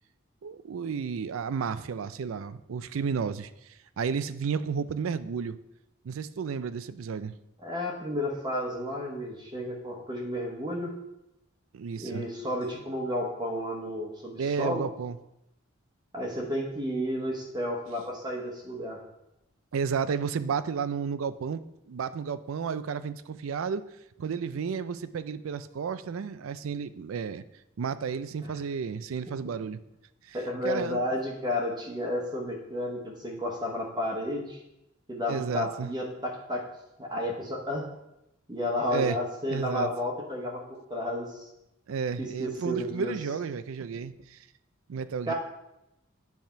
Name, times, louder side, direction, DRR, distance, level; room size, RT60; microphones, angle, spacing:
voice 1, 0.4-5.6 6.0-7.3 11.7-12.2 14.4-15.2 19.7-21.6 21.9-23.8 24.2-27.4 27.8-29.8 30.2-30.4 30.6-31.0 35.3-35.9 38.9-39.2 39.5-39.9 41.9-44.5 44.9-45.3, right 6 dB, 80° right, 14 dB, 0.4 m, -32 dB
voice 2, 7.6-10.9 12.0-14.9 16.1-19.0 28.4-28.6 30.3-34.6 35.1-36.6 37.0-37.9 38.5-40.6 40.9-41.5 42.2-43.1 45.3-45.4, left 1 dB, 20° right, 0 dB, 1.1 m, -32 dB
9.0 x 3.5 x 5.7 m, 0.87 s
head